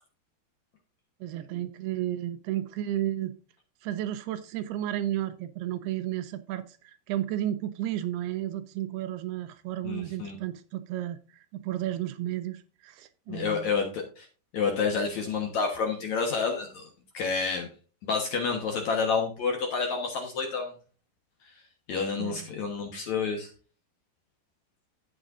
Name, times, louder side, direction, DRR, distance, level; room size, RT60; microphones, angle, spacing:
voice 1, 1.2-3.4 3.8-11.2 11.5-13.7 22.2-22.5, right 13 dB, 80° right, 2.5 m, -33 dB
voice 2, 9.8-10.4 13.3-14.3 14.5-16.9 17.1-17.7 18.0-20.7 21.9-23.5, left 5 dB, 60° left, 2.0 m, -29 dB
12.5 x 8.5 x 2.6 m
omnidirectional pair, 4.8 m